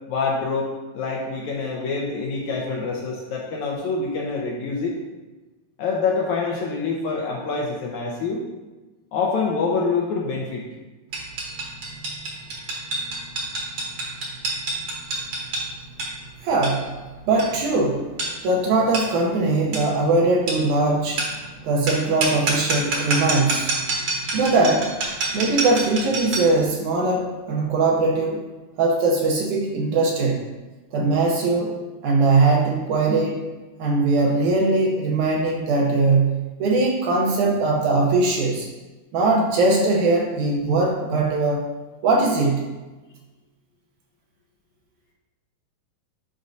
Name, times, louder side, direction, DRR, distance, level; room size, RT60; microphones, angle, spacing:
voice 1, 0.1-5.0 5.8-8.4 9.1-10.7, left 4 dB, 75° left, -2 dB, 1.8 m, -26 dB
sound 1, 11.1-26.6, right 2 dB, 55° right, 1.7 m, -28 dB
voice 2, 16.4-16.9 17.3-18.1 18.4-21.3 21.6-23.7 24.3-24.9 25.3-28.5 28.8-30.4 30.9-33.4 33.8-38.7 39.1-41.6 42.0-42.7, right 3 dB, 70° right, -1 dB, 2.0 m, -20 dB
9.9 x 5.2 x 2.6 m, 1.2 s
omnidirectional pair, 4.0 m